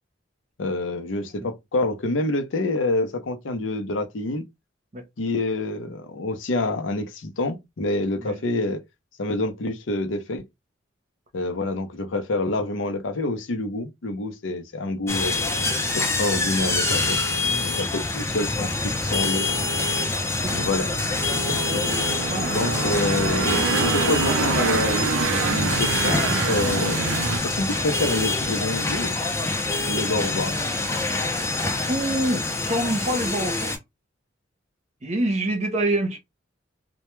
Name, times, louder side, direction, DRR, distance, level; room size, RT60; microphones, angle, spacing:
voice 1, 0.6-4.4 5.2-8.8 9.2-10.4 11.3-15.4 15.9-17.2 17.6-19.5 20.5-20.9 21.5-21.9 22.5-27.0 27.4-29.2 29.9-30.6, left 2 dB, 75° left, 0.6 m, -27 dB
sound 1, 15.1-33.8, left 2 dB, 15° left, 0.5 m, -26 dB
sound 2, 19.0-27.4, right 4 dB, 85° right, 0.5 m, -27 dB
voice 2, 31.9-33.7 35.0-36.2, right 1 dB, 35° right, 0.7 m, -26 dB
2.1 x 2.1 x 3.0 m
head